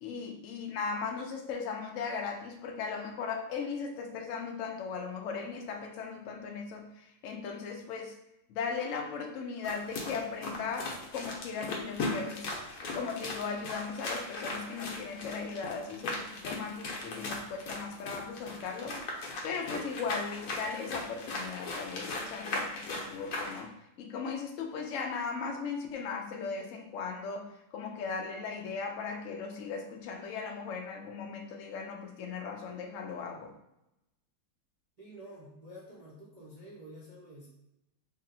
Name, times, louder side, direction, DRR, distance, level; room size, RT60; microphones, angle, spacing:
voice 1, 0.0-8.2 8.5-12.5 12.9-19.0 19.4-33.5, left 5 dB, 85° left, 2 dB, 0.7 m, -37 dB
sound 1, 9.6-23.6, left 2 dB, 65° left, 1.1 m, -38 dB
voice 2, 35.0-37.5, equal, 60° right, -9 dB, 0.4 m, -49 dB
3.0 x 2.8 x 3.9 m, 0.86 s
omnidirectional pair, 2.0 m